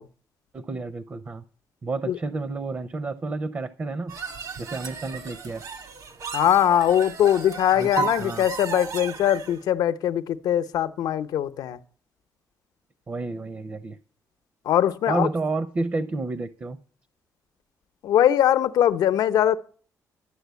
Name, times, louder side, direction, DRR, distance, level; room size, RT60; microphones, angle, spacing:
voice 1, 0.5-1.4 1.8-4.1 4.6-5.6 7.8-8.5 13.1-14.0 15.1-16.8, right 3 dB, 30° right, 0.7 m, -30 dB
sound 1, 4.1-9.6, right 5 dB, 60° right, 1.5 m, -34 dB
voice 2, 6.3-11.8 14.7-15.3 18.0-19.6, left 11 dB, 85° left, 0.8 m, -21 dB
11.5 x 7.5 x 8.2 m
cardioid pair, 120°, 7 cm